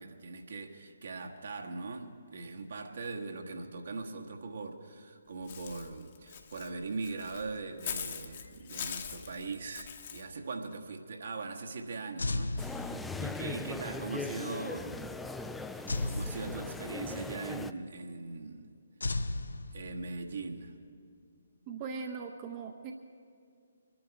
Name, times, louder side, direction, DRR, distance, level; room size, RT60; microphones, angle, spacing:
voice 1, 0.0-15.0 15.8-18.7 19.7-20.7, right 3 dB, 60° right, 2 dB, 1.5 m, -40 dB
Walk footsteps / Bird, 5.5-10.2, left 8 dB, 40° left, 1.1 m, -42 dB
sound 1, 12.2-13.5 15.9-17.1 19.0-20.3, left 2 dB, 70° left, 0.7 m, -35 dB
sound 2, 12.6-17.7, left 3 dB, 5° left, 0.4 m, -40 dB
voice 2, 21.7-22.9, right 5 dB, 25° right, 3 dB, 0.8 m, -39 dB
24.0 x 11.0 x 4.7 m, 2.3 s
figure-of-eight pair, 135°, 0 cm